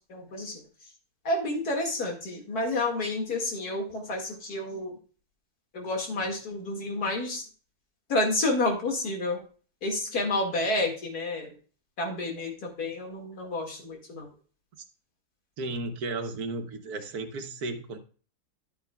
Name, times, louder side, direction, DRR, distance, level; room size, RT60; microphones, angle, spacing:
voice 1, 0.1-0.6 1.2-5.0 5.7-7.4 8.1-9.4 9.8-11.5 12.0-14.3, left 2 dB, 75° left, 1 dB, 2.5 m, -30 dB
voice 2, 15.6-18.0, right 3 dB, 75° right, 7 dB, 1.5 m, -34 dB
11.5 x 8.5 x 2.3 m, 0.39 s
omnidirectional pair, 1.6 m